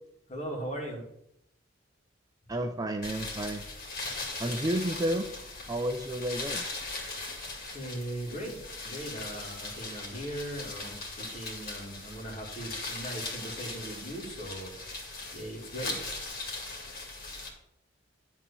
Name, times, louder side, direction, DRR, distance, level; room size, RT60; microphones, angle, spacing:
voice 1, 0.3-1.0 7.7-14.7 15.3-16.0, right 1 dB, 30° left, -2 dB, 2.3 m, -39 dB
voice 2, 2.5-3.6 4.4-5.3 5.7-6.7, right 1 dB, 20° right, 5 dB, 0.4 m, -31 dB
sound 1, 3.0-17.5, left 3 dB, 45° left, 2.2 m, -39 dB
10.5 x 3.7 x 6.9 m, 0.79 s
head